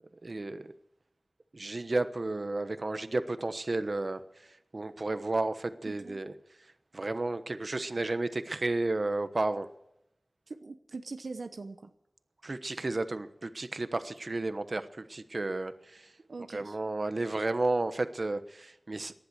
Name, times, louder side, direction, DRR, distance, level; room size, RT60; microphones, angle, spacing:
voice 1, 0.2-0.7 1.5-4.2 4.7-6.3 6.9-9.7 12.4-16.1 16.5-19.1, right 2 dB, 55° right, 11 dB, 1.1 m, -32 dB
voice 2, 5.8-6.2 10.5-11.9 16.3-16.8, right 3 dB, 85° right, 7 dB, 0.9 m, -42 dB
19.0 x 11.5 x 6.4 m, 0.83 s
wide cardioid pair, 55°, 0 cm